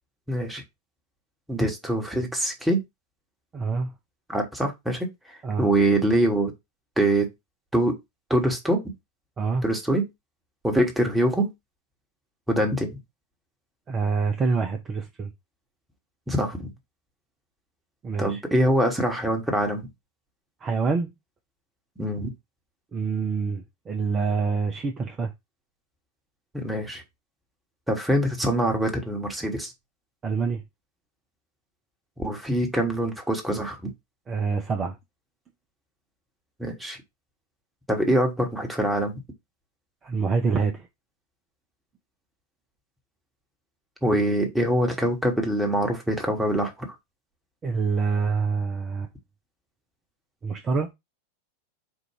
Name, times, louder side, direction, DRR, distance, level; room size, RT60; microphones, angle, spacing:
voice 1, 0.3-0.6 1.5-2.8 4.3-6.5 7.0-7.3 7.7-8.0 8.3-8.8 9.6-10.1 10.6-11.5 12.5-12.9 16.3-16.7 18.2-19.9 22.0-22.3 26.5-27.0 27.9-29.7 32.2-33.9 36.6-37.0 37.9-39.2 44.0-46.9, right 1 dB, 5° right, 1.3 m, -24 dB
voice 2, 3.5-3.9 5.4-5.7 9.4-9.6 13.9-15.3 18.0-18.4 20.6-21.1 22.9-25.3 30.2-30.6 34.3-35.0 40.0-40.9 47.6-49.1 50.4-50.9, right 5 dB, 25° right, 0.6 m, -26 dB
4.5 x 2.5 x 4.5 m
figure-of-eight pair, 90°, 0 cm